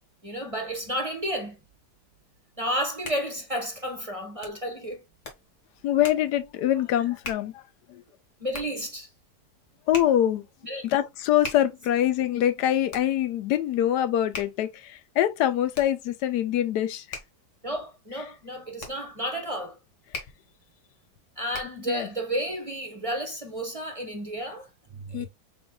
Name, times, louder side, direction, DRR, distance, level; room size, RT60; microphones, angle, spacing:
voice 1, 0.2-1.6 2.6-5.0 8.4-9.1 10.6-10.9 17.6-19.8 21.4-25.3, equal, 25° right, 0.9 m, -32 dB
Hands, 2.8-21.9, left 3 dB, 50° left, 1.6 m, -44 dB
voice 2, 5.8-7.6 7.9-8.0 9.9-10.4 10.8-17.2 21.9-22.1 25.1-25.3, left 11 dB, 85° left, 1.2 m, -24 dB
6.0 x 3.9 x 2.2 m
omnidirectional pair, 1.8 m